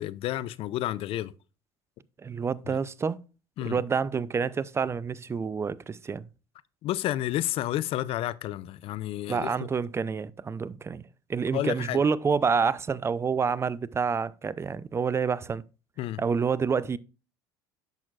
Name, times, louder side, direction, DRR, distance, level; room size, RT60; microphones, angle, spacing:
voice 1, 0.0-1.3 3.6-3.8 6.8-9.7 11.5-12.0 16.0-16.2, left 14 dB, 55° left, 0.5 m, -30 dB
voice 2, 2.2-3.2 3.6-6.3 9.3-11.0 11.3-15.6 16.2-17.0, right 5 dB, 20° right, 0.5 m, -28 dB
10.5 x 6.2 x 2.5 m
hypercardioid pair, 70°, 12 cm